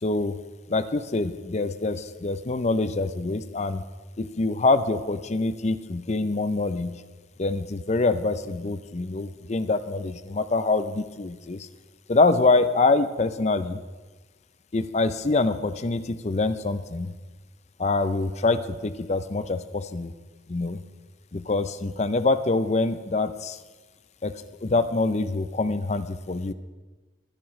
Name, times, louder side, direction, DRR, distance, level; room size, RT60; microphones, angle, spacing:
voice 1, 0.0-0.4 0.7-3.8 4.2-7.0 7.4-11.7 12.1-13.8 14.7-17.1 17.8-20.1 20.5-20.8 21.3-23.6 24.2-24.3 24.6-26.5, left 3 dB, 35° left, 12 dB, 0.5 m, -25 dB
22.0 x 10.5 x 3.2 m, 1.3 s
head